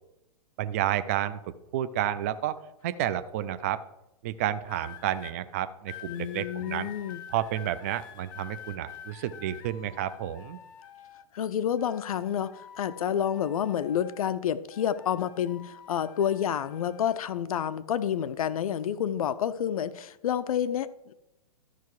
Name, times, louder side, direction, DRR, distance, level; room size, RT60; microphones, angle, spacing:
voice 1, 0.6-3.8 4.2-6.9 7.3-10.6, right 11 dB, 25° right, 12 dB, 0.3 m, -31 dB
sound 1, 4.6-5.3 5.9-11.4 11.8-14.4 14.7-17.2 18.0-18.3, left 9 dB, 30° left, 0.8 m, -48 dB
voice 2, 6.1-7.2 11.3-21.1, left 9 dB, 70° left, 15 dB, 0.5 m, -29 dB
13.0 x 5.6 x 4.7 m, 0.88 s
hypercardioid pair, 165°, 19 cm